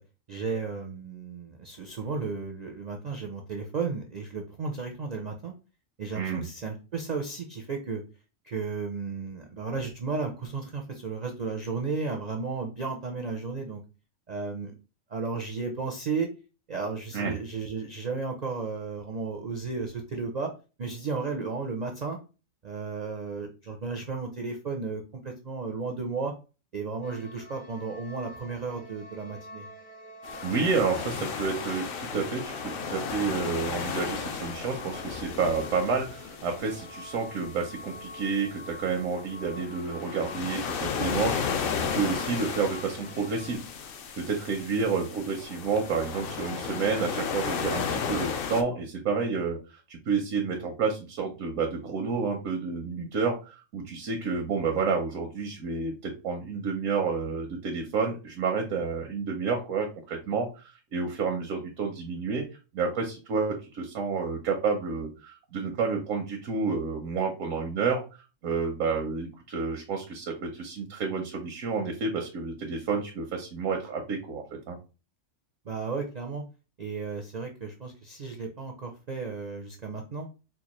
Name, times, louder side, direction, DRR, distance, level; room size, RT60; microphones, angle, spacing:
voice 1, 0.3-5.5 6.0-8.0 8.4-13.8 14.3-14.7 15.1-16.3 16.7-20.5 20.8-22.2 22.6-26.3 26.7-29.7 75.7-76.4 76.8-80.3, right 4 dB, 60° right, 2 dB, 0.4 m, -34 dB
sound 1, 27.0-43.5, left 1 dB, 10° left, 0.4 m, -46 dB
sound 2, 30.2-48.6, left 6 dB, 60° left, 0.6 m, -34 dB
voice 2, 30.4-43.6 44.2-62.4 62.7-68.0 68.4-74.8, right 5 dB, 85° right, 2 dB, 1.1 m, -30 dB
4.5 x 2.3 x 2.9 m, 0.32 s
omnidirectional pair, 1.3 m